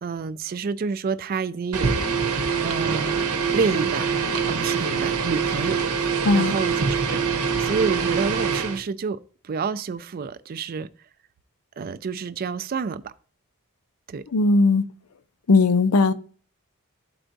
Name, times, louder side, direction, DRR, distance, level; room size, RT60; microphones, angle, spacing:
voice 1, 0.0-2.0 2.6-3.3 3.5-4.1 4.5-7.2 7.6-9.2 9.4-10.9 11.8-13.1 14.1-14.2, right 5 dB, 40° right, 0.4 m, -28 dB
sound 1, 1.7-8.8, right 5 dB, 85° right, 0.9 m, -24 dB
voice 2, 14.3-14.9 15.5-16.1, left 3 dB, 75° left, 0.6 m, -18 dB
12.5 x 4.4 x 2.6 m
head